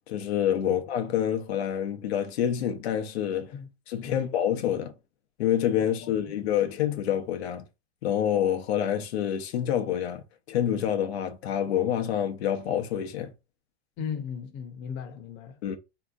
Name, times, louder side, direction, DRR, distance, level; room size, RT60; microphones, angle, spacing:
voice 1, 0.1-3.6 3.9-4.9 5.4-7.7 8.0-13.3 15.6-15.8, left 10 dB, 90° left, 0.7 m, -27 dB
voice 2, 5.8-6.4 14.0-15.6, left 7 dB, 35° left, 0.7 m, -37 dB
3.5 x 2.8 x 2.4 m
supercardioid pair, 140°, 31 cm